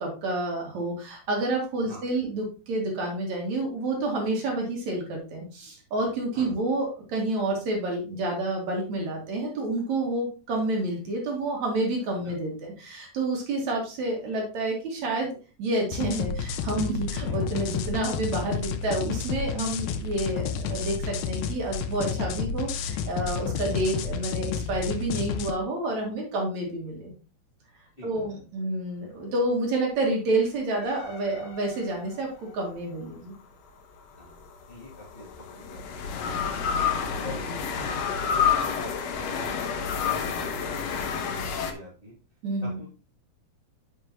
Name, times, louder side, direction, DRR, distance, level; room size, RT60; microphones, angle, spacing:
voice 1, 0.0-15.3 15.6-27.1 28.0-32.3 32.5-33.3 42.4-42.8, right 2 dB, 65° right, 0 dB, 3.3 m, -29 dB
sound 1, 15.9-25.5, left 6 dB, 90° left, 2.3 m, -31 dB
sound 2, 30.8-32.3 34.2-41.7, left 7 dB, 65° left, 2.0 m, -29 dB
voice 2, 34.1-36.5 37.1-42.1 42.6-42.9, equal, 20° left, -4 dB, 2.3 m, -45 dB
9.5 x 6.5 x 2.9 m, 0.35 s
omnidirectional pair, 3.6 m